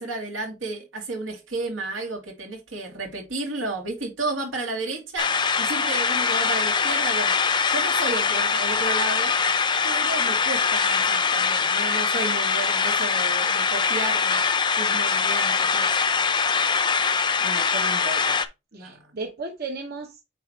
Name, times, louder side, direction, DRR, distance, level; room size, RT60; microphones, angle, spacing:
voice 1, 0.0-5.3 5.6-7.4 7.7-9.3 9.8-14.4 14.8-15.9 18.7-19.1, right 2 dB, 90° right, 2.5 m, -32 dB
sound 1, 5.2-18.4, left 5 dB, 25° left, 0.5 m, -23 dB
voice 2, 17.4-18.4 18.7-20.2, right 2 dB, 55° right, 0.8 m, -35 dB
9.1 x 3.3 x 3.1 m
head